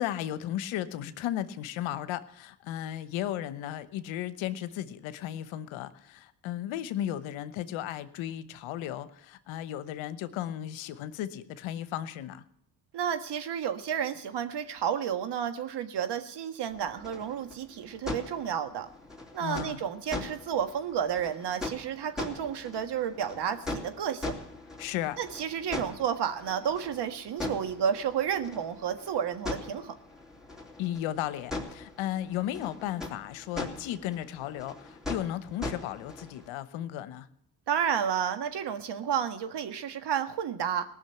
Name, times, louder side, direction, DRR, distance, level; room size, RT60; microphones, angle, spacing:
voice 1, 0.0-12.4 19.4-19.8 24.8-25.2 30.8-37.3, left 12 dB, 75° left, 14 dB, 1.1 m, -35 dB
voice 2, 12.9-18.9 19.3-24.3 25.2-30.0 37.7-40.8, right 8 dB, 55° right, 9 dB, 1.6 m, -31 dB
sound 1, 16.7-36.5, left 2 dB, ahead, 3.4 m, -41 dB
18.5 x 6.4 x 8.9 m, 0.71 s
supercardioid pair, 65°, 47 cm